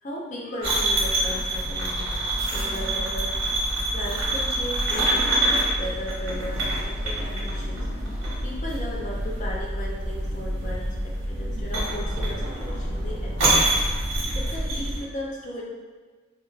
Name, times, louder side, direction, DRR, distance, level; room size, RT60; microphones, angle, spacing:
voice 1, 0.0-2.2 2.5-3.3 3.9-13.7 14.0-14.1 14.3-15.6, equal, 40° left, -2 dB, 0.4 m, -36 dB
sound 1, 0.6-15.0, right 1 dB, 65° right, 0.8 m, -26 dB
2.3 x 2.2 x 3.0 m, 1.4 s
head